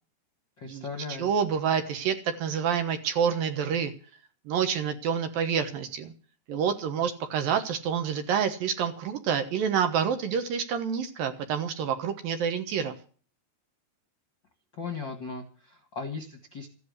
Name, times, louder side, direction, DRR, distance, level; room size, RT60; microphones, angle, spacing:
voice 1, 0.6-1.3 14.7-16.7, left 4 dB, 45° left, 5 dB, 1.5 m, -37 dB
voice 2, 1.2-3.9 4.5-6.1 6.5-12.9, right 7 dB, 65° right, 7 dB, 2.8 m, -28 dB
14.5 x 9.6 x 8.3 m, 0.41 s
omnidirectional pair, 4.8 m